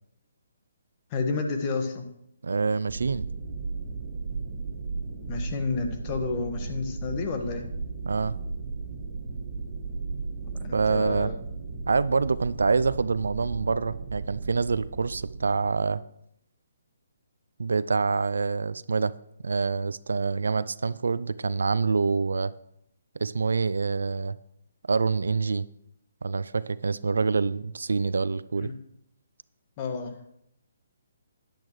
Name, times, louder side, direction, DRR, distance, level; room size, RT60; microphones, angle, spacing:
voice 1, 1.1-2.1 5.3-7.7 10.5-11.3 28.6-28.8 29.8-30.2, left 4 dB, 30° left, 5 dB, 1.5 m, -30 dB
voice 2, 2.4-3.3 8.1-8.3 10.7-11.3 11.9-16.0 17.6-19.1 19.4-22.5 23.2-24.3 24.9-25.6 26.2-28.7, right 4 dB, 70° right, 17 dB, 0.4 m, -26 dB
sound 1, 2.9-15.9, right 4 dB, 55° right, 1.8 m, -36 dB
11.5 x 10.5 x 3.1 m, 0.76 s
figure-of-eight pair, 140°, 0 cm